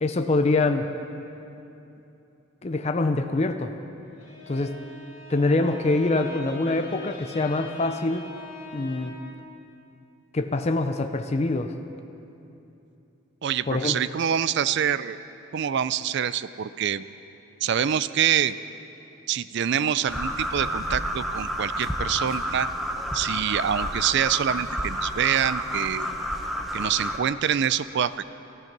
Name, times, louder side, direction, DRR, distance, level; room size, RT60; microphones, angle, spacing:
voice 1, 0.0-0.9 2.6-3.7 4.5-4.8 5.3-8.3 8.7-9.1 10.3-11.7 13.7-14.0, left 2 dB, 30° left, 7 dB, 0.5 m, -24 dB
Bowed string instrument, 4.0-9.4, equal, 65° left, 3.2 m, -43 dB
voice 2, 13.4-15.2 15.5-17.0 17.6-18.6 19.3-22.7 23.1-26.1 26.7-28.3, right 9 dB, 55° right, 15 dB, 0.4 m, -25 dB
sound 1, 20.1-27.2, equal, ahead, 0.8 m, -30 dB
14.5 x 13.5 x 6.0 m, 2.8 s
head